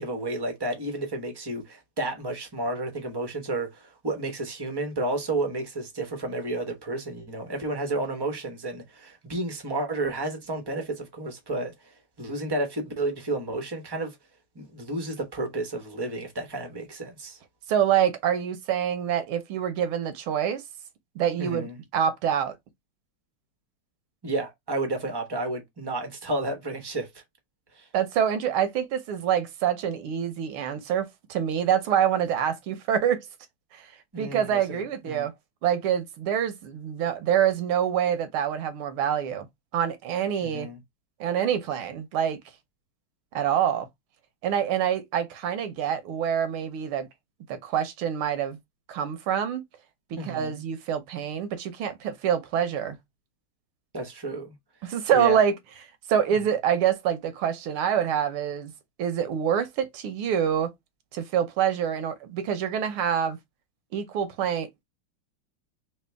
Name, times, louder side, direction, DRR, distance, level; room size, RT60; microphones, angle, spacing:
voice 1, 0.0-11.7 12.2-14.2 14.5-17.4 21.4-21.7 24.2-27.1 27.8-27.9 34.1-35.3 40.4-40.8 50.2-50.6 53.9-54.5 55.1-55.4, right 2 dB, 25° right, 0.4 m, -31 dB
voice 2, 17.7-20.6 21.1-22.6 27.9-33.3 33.7-33.9 34.2-35.3 35.6-39.5 39.7-40.7 41.2-42.4 43.3-43.9 44.4-47.1 47.5-48.6 48.9-49.6 50.1-53.0 54.8-55.5 56.1-58.7 59.0-60.7 61.1-63.4 63.9-64.7, right 9 dB, 80° right, 1.7 m, -26 dB
3.9 x 2.9 x 3.4 m
omnidirectional pair, 2.3 m